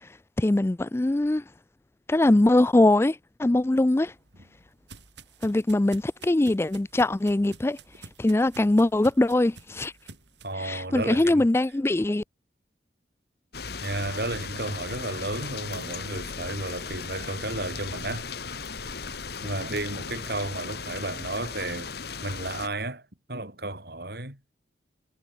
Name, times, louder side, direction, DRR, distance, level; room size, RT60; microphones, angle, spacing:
voice 1, 0.4-1.4 2.1-4.1 5.4-7.8 8.2-9.9 10.6-12.2, left 1 dB, 15° left, 0.3 m, -22 dB
sound 1, 4.0-10.5, right 4 dB, 75° right, 5.2 m, -50 dB
voice 2, 10.4-11.5 13.8-18.7 19.4-21.9 22.2-24.4, right 2 dB, 60° right, 6.7 m, -33 dB
sound 2, 13.5-22.7, left 5 dB, 60° left, 1.8 m, -37 dB
head